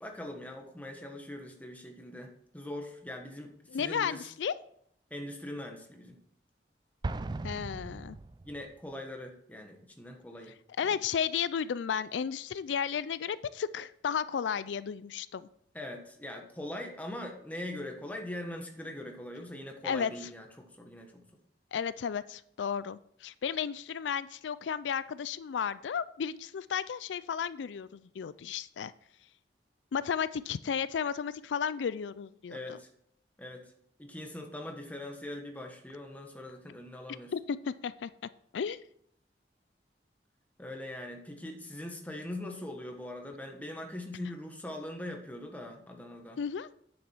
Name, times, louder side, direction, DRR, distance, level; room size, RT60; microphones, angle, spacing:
voice 1, 0.0-4.3 5.1-6.2 8.4-10.6 10.8-10.9 15.7-21.2 32.5-32.9 33.4-33.7 34.0-37.3 40.6-46.4, left 1 dB, 10° left, 3 dB, 1.4 m, -42 dB
voice 2, 3.7-4.5 7.4-8.2 10.8-15.5 19.8-20.1 21.7-28.9 29.9-32.8 37.3-38.1 38.5-38.8 46.4-46.7, left 7 dB, 90° left, 16 dB, 0.4 m, -33 dB
Explosion, 7.0-8.8, right 2 dB, 25° right, 0.3 m, -38 dB
9.3 x 7.2 x 4.6 m, 0.68 s
head